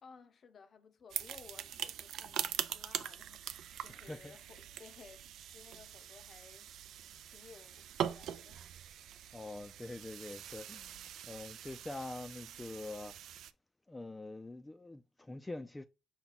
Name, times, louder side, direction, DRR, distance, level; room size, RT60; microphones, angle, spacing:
voice 1, 0.0-6.7 7.3-8.6, left 5 dB, 50° left, 0.7 m, -58 dB
sound 1, 1.1-13.5, right 10 dB, 75° right, 0.3 m, -43 dB
voice 2, 3.9-4.3 9.3-13.1 13.9-15.9, left 2 dB, 15° left, 0.4 m, -45 dB
5.7 x 2.3 x 4.0 m
cardioid pair, 90°, 0 cm